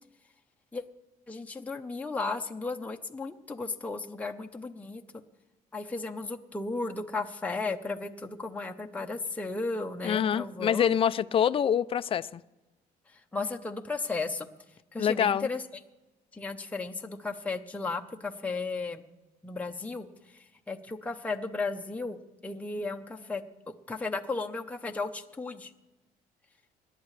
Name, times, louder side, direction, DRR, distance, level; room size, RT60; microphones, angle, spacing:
voice 1, 1.3-5.0 5.7-10.9 13.1-14.5 14.9-15.6 16.3-19.0 19.4-22.2 22.4-25.7, left 3 dB, 10° left, 3 dB, 0.8 m, -35 dB
voice 2, 10.0-12.4 15.0-15.5, left 9 dB, 35° left, 14 dB, 0.4 m, -26 dB
27.0 x 10.5 x 3.3 m, 1.1 s
cardioid pair, 110°, 17 cm